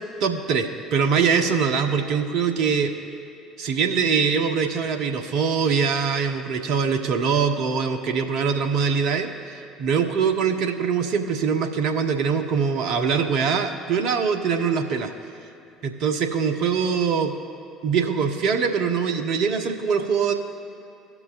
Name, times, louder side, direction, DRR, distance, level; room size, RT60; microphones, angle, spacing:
voice 1, 0.2-2.9 3.6-15.1 15.8-17.3 17.8-20.3, right 6 dB, 60° right, 5 dB, 1.0 m, -23 dB
17.5 x 6.0 x 2.5 m, 2.7 s
hypercardioid pair, 60°, 0 cm